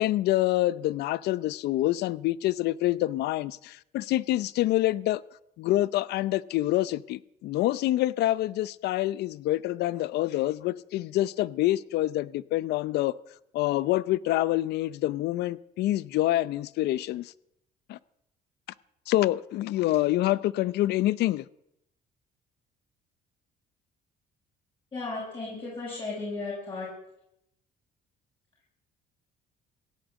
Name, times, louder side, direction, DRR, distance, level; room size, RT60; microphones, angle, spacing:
voice 1, 0.0-5.2 5.6-13.1 13.5-17.3 17.9-18.0 19.1-21.5, left 15 dB, 80° left, 0.7 m, -26 dB
voice 2, 24.9-26.9, left 3 dB, 30° left, 7.2 m, -35 dB
17.0 x 10.0 x 8.2 m
cardioid pair, 110°, 17 cm